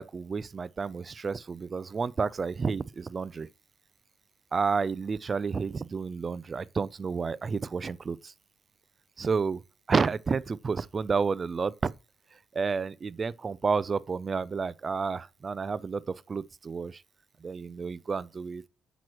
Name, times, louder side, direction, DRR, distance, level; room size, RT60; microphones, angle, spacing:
voice 1, 0.0-3.5 4.5-8.3 9.2-9.6 9.9-11.9 12.5-16.0 16.3-17.0 17.4-18.6, right 5 dB, 35° right, 0.4 m, -30 dB
7.8 x 6.1 x 3.0 m
cardioid pair, 90°, 0 cm